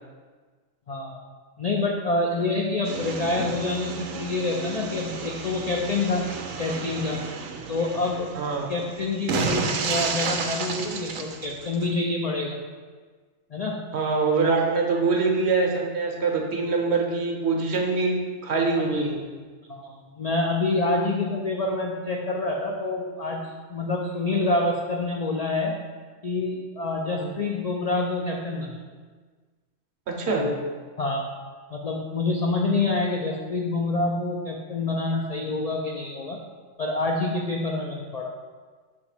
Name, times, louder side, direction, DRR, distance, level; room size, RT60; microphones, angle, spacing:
voice 1, 0.9-1.2 1.6-6.3 6.6-7.2 7.7-8.3 8.7-12.6 13.5-13.9 18.8-19.1 19.7-25.8 26.2-28.8 30.3-30.5 31.0-31.3 31.7-36.4 36.8-38.4, left 2 dB, 60° left, 0 dB, 0.4 m, -27 dB
sound 1, 2.8-11.9, right 4 dB, 85° right, 1.0 m, -32 dB
voice 2, 8.3-8.7 13.9-18.2 18.4-19.2 27.1-27.4 30.1-30.5, right 4 dB, 60° right, 1 dB, 1.0 m, -24 dB
6.9 x 3.0 x 4.8 m, 1.5 s
omnidirectional pair, 1.3 m